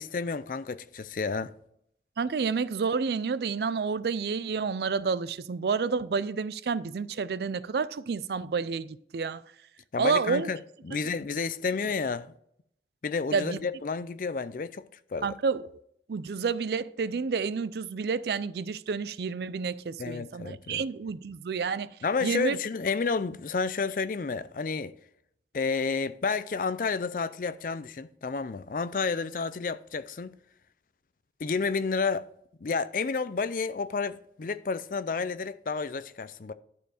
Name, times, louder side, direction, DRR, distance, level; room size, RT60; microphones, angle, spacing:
voice 1, 0.0-1.5 9.9-10.6 10.8-12.3 13.0-14.8 15.1-15.3 20.0-20.8 22.0-24.9 25.5-30.3 31.4-32.2 32.6-36.5, left 4 dB, 50° left, 0.4 m, -30 dB
voice 2, 2.2-9.4 10.0-10.5 13.3-13.6 15.2-15.6 16.1-21.9 22.2-22.6, right 5 dB, 65° right, 0.4 m, -29 dB
11.5 x 4.5 x 4.9 m
head